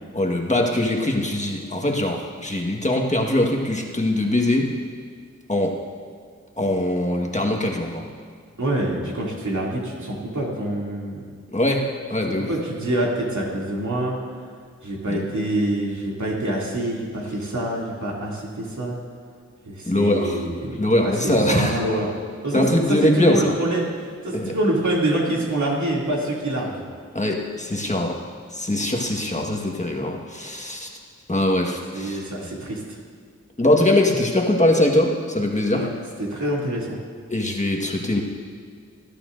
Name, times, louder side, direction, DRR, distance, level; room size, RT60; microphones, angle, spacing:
voice 1, 0.1-4.7 5.5-5.7 6.6-8.0 11.5-12.5 15.1-15.3 19.9-20.4 20.8-21.8 22.5-23.6 24.3-24.5 27.1-28.2 28.5-30.9 31.3-32.2 33.6-35.9 37.3-38.2, left 1 dB, 25° left, 1 dB, 1.5 m, -22 dB
voice 2, 8.6-11.2 12.3-14.1 14.8-19.0 19.7-22.1 22.4-26.8 31.9-33.0 35.7-35.9 36.2-37.0, right 1 dB, 80° right, -4 dB, 2.8 m, -26 dB
19.5 x 11.5 x 2.6 m, 2.1 s
wide cardioid pair, 60°, 29 cm